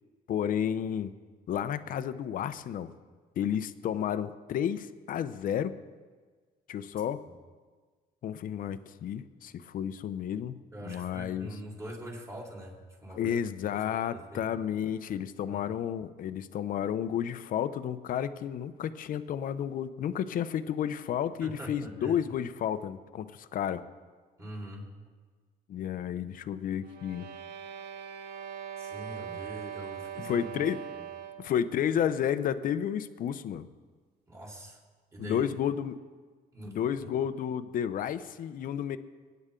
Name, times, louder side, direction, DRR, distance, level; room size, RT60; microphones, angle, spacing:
voice 1, 0.3-1.1 1.5-2.9 3.4-5.8 6.7-7.2 8.2-11.5 13.1-23.8 25.7-27.3 30.2-30.8 31.4-33.7 35.2-36.0 36.7-39.0, left 9 dB, 55° left, 12 dB, 0.7 m, -31 dB
voice 2, 10.7-13.4 13.7-14.5 15.5-15.6 21.4-22.2 24.4-24.9 28.8-30.5 31.0-31.1 34.3-34.8 35.1-35.4 36.5-37.1, right 1 dB, 20° right, -3 dB, 4.1 m, -43 dB
sound 1, 26.8-31.6, right 8 dB, 75° right, 1.1 m, -41 dB
23.0 x 9.5 x 3.8 m, 1.5 s
cardioid pair, 110°, 17 cm